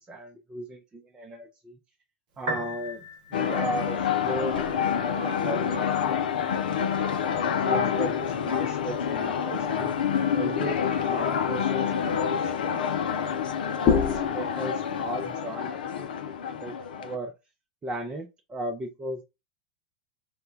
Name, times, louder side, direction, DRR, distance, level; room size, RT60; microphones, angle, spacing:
voice 1, 0.0-1.8 2.4-5.9 7.6-9.9 10.3-12.8 13.8-16.1 16.6-17.3 17.8-19.2, right 1 dB, 20° right, 2 dB, 0.5 m, -36 dB
Piano, 2.3-15.3, right 1 dB, 60° right, 0.8 m, -45 dB
sound 1, 3.3-17.2, left 7 dB, 75° left, 0.4 m, -28 dB
sound 2, 4.5-8.0 8.3-8.4 13.8-16.2, left 7 dB, 35° left, 0.8 m, -32 dB
2.2 x 2.2 x 3.7 m, 0.25 s
hypercardioid pair, 90°, 5 cm